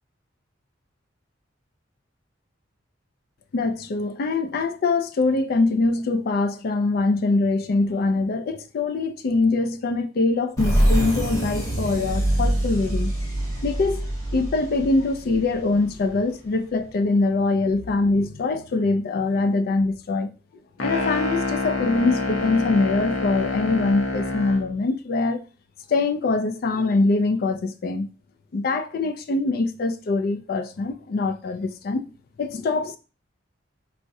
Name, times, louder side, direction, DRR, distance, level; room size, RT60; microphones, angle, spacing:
voice 1, 3.5-13.1 13.6-14.0 14.3-20.3 20.8-25.4 25.9-28.1 28.5-32.0 32.4-33.0, left 3 dB, 50° left, 0.3 m, -23 dB
sound 1, 10.6-16.1, right 1 dB, 20° left, 0.9 m, -24 dB
sound 2, 20.8-24.7, left 3 dB, 80° left, 0.7 m, -27 dB
4.6 x 2.1 x 2.6 m
head